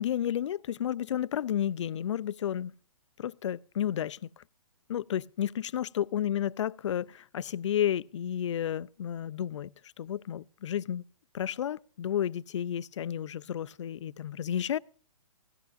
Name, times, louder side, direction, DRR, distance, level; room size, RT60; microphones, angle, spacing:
voice 1, 0.0-2.7 3.2-4.4 4.9-9.7 10.0-11.0 11.3-14.8, left 10 dB, 55° left, 0.4 m, -32 dB
17.0 x 14.5 x 2.6 m
hypercardioid pair, 160°, 18 cm